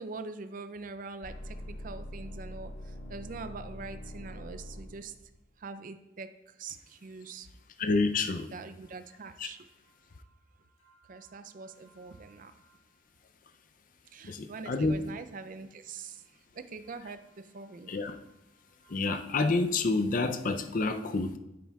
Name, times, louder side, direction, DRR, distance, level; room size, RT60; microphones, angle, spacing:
voice 1, 0.0-5.1 5.6-7.5 8.5-9.7 11.1-12.5 14.1-16.2 16.5-17.9, right 4 dB, 45° right, 10 dB, 0.4 m, -43 dB
sound 1, 1.2-5.3 10.8-12.3 12.6-12.7 18.8-18.9, equal, 75° left, 1.5 m, -44 dB
voice 2, 7.8-8.5 9.4-9.5 14.2-15.0 17.9-18.2 18.9-21.4, left 3 dB, 45° left, 8 dB, 0.5 m, -28 dB
9.3 x 8.4 x 2.3 m, 0.94 s
head